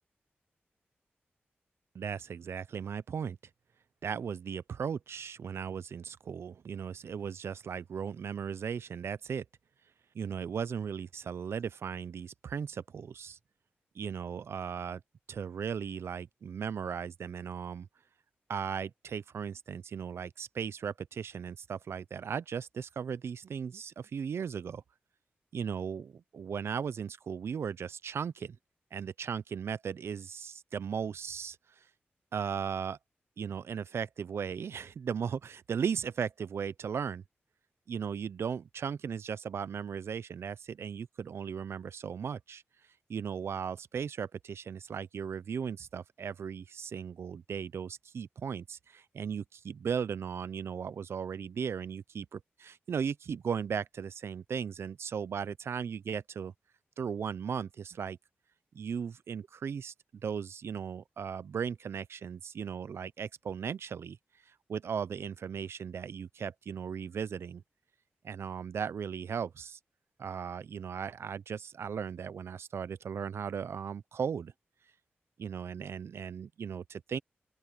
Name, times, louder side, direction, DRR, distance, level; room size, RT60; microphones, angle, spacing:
voice 1, 1.9-3.4 4.0-9.4 10.1-13.4 14.0-15.0 15.3-17.9 18.5-24.8 25.5-28.6 28.9-31.6 32.3-33.0 33.4-37.2 37.9-42.6 43.1-56.5 57.0-58.2 58.7-59.9 60.2-64.2 64.7-67.6 68.2-69.8 70.2-74.5 75.4-77.2, right 7 dB, 80° right, 0.6 m, -37 dB
open air
cardioid pair, 55°, 4 cm